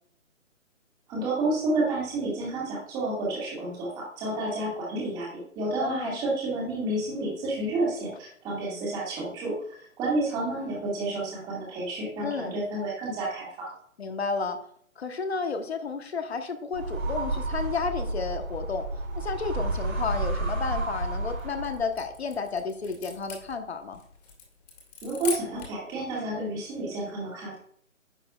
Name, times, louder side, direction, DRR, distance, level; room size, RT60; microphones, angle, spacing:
voice 1, 1.1-9.5 10.0-13.7 25.0-27.6, right 2 dB, 10° right, -4 dB, 1.8 m, -30 dB
voice 2, 5.8-6.2 8.6-8.8 12.2-12.5 14.0-14.6 15.0-18.8 19.2-24.0, left 4 dB, 50° left, 7 dB, 1.1 m, -32 dB
sound 1, 16.7-22.0, right 2 dB, 80° right, 2.8 m, -31 dB
sound 2, 21.2-25.9, left 4 dB, 30° left, 2.3 m, -41 dB
10.5 x 6.1 x 2.3 m, 0.62 s
hypercardioid pair, 160°, 40 cm